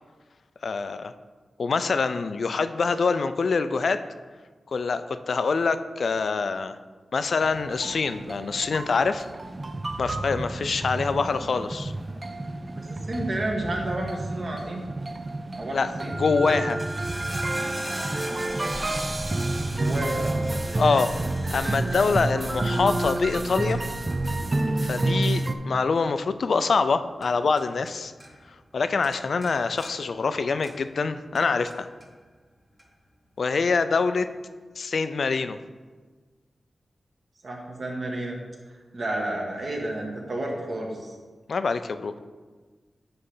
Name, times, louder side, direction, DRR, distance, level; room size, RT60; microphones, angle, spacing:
voice 1, 0.6-1.1 1.6-4.0 4.7-6.8 7.1-9.2 10.0-11.9 15.7-16.8 20.7-21.1 21.5-23.8 24.8-28.1 28.7-31.9 33.4-34.3 34.8-35.6 41.5-42.2, left 4 dB, 65° left, 11 dB, 0.4 m, -25 dB
sound 1, 7.4-25.5, right 2 dB, 25° right, 0.4 m, -29 dB
voice 2, 12.7-14.9 15.5-16.2 19.7-20.4 37.4-38.4 38.9-41.1, right 1 dB, 50° right, 0 dB, 1.4 m, -31 dB
sound 2, 16.6-27.9 28.2-28.8 29.0-31.0 31.3-32.1 32.8-32.9, equal, 10° right, 0.9 m, -41 dB
9.8 x 3.3 x 5.5 m, 1.4 s
wide cardioid pair, 125°, 0 cm